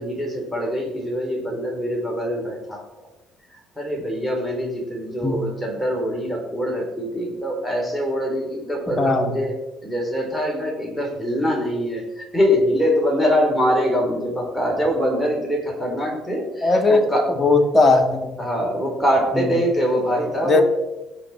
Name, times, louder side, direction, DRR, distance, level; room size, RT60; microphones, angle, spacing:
voice 1, 0.0-2.8 3.8-9.5 9.8-17.3 18.4-20.6, equal, 10° left, 0 dB, 4.2 m, -23 dB
voice 2, 9.0-9.3 16.6-17.1 17.4-18.3 19.3-19.5 20.4-20.6, left 3 dB, 30° left, 4 dB, 2.0 m, -18 dB
17.5 x 6.1 x 4.5 m, 1.0 s
supercardioid pair, 70°, 0 cm